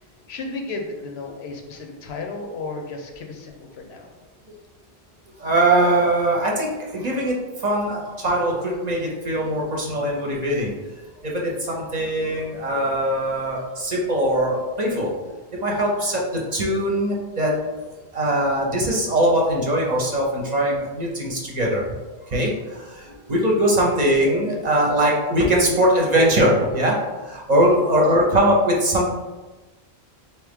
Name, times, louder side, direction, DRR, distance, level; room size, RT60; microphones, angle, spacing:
voice 1, 0.3-4.1 27.7-27.8, left 3 dB, 85° left, 3 dB, 0.9 m, -34 dB
voice 2, 5.4-7.3 7.6-10.7 11.2-15.1 15.6-17.5 18.1-21.8 22.3-29.1, right 1 dB, 45° right, -2 dB, 0.7 m, -21 dB
3.8 x 2.9 x 3.5 m, 1.2 s
omnidirectional pair, 1.1 m